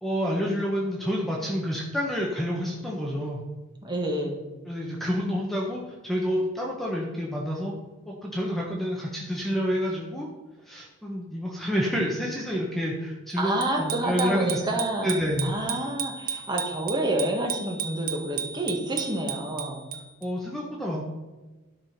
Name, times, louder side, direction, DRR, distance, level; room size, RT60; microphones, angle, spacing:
voice 1, 0.0-3.4 4.7-7.7 8.1-10.3 10.7-14.6 15.0-15.5 20.2-21.0, equal, ahead, -3 dB, 1.3 m, -28 dB
voice 2, 3.8-4.4 13.4-15.2 15.4-19.9, right 1 dB, 20° right, 0 dB, 1.9 m, -28 dB
Bicycle bell, 13.6-20.3, right 7 dB, 40° right, 0.9 m, -35 dB
12.5 x 6.1 x 5.9 m, 1.2 s
head